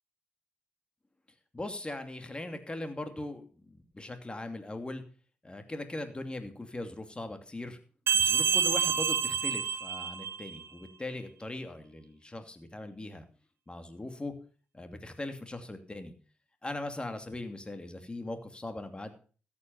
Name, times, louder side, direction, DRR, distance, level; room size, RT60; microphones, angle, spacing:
voice 1, 1.5-5.0 5.4-7.8 8.1-13.2 13.7-14.3 14.7-16.1 16.6-19.1, left 2 dB, 25° left, 7 dB, 2.7 m, -40 dB
sound 1, 8.1-10.6, right 7 dB, 80° right, 1.3 m, -28 dB
14.5 x 8.7 x 5.6 m, 0.39 s
cardioid pair, 55°, 4 cm